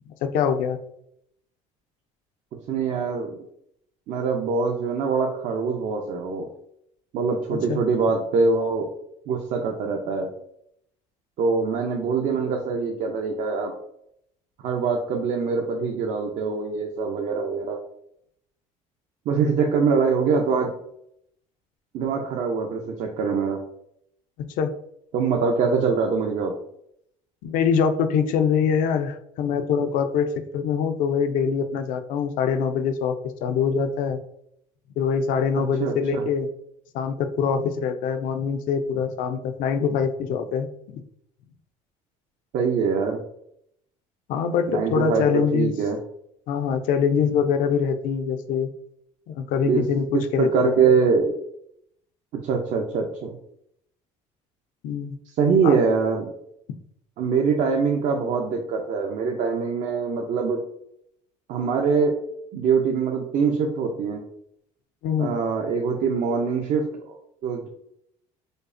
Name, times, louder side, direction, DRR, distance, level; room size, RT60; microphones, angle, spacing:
voice 1, 0.2-0.8 7.7-7.8 24.4-24.7 27.4-30.3 30.5-33.1 33.4-34.2 35.0-36.5 36.9-41.0 44.3-45.7 46.5-48.7 49.3-50.8 54.8-55.2 55.6-55.8 65.0-65.3, left 6 dB, 70° left, 8 dB, 0.5 m, -24 dB
voice 2, 2.7-3.4 4.1-6.5 7.1-8.9 9.3-10.3 11.4-13.7 14.6-17.8 19.3-20.7 21.9-23.6 25.1-26.5 35.8-36.2 42.5-43.2 44.7-46.0 49.7-49.8 50.4-51.3 52.4-53.4 55.4-56.3 57.2-60.6 61.5-62.2 62.5-64.2 65.2-67.7, right 5 dB, 60° right, 1 dB, 0.6 m, -23 dB
5.1 x 2.0 x 2.5 m, 0.73 s
cardioid pair, 105°, 14 cm